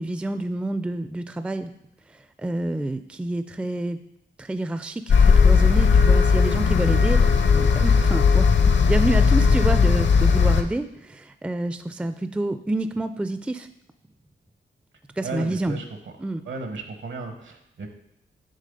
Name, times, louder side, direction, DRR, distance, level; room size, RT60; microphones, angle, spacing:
voice 1, 0.0-1.7 2.1-4.0 4.4-13.7 15.2-15.8 16.2-16.4, right 1 dB, 5° right, 10 dB, 0.3 m, -28 dB
sound 1, 5.1-10.6, left 5 dB, 65° left, 0.7 m, -17 dB
voice 2, 15.2-15.8 16.5-17.9, right 3 dB, 70° right, 5 dB, 1.1 m, -34 dB
7.6 x 3.2 x 5.3 m, 0.83 s
cardioid pair, 65°, 20 cm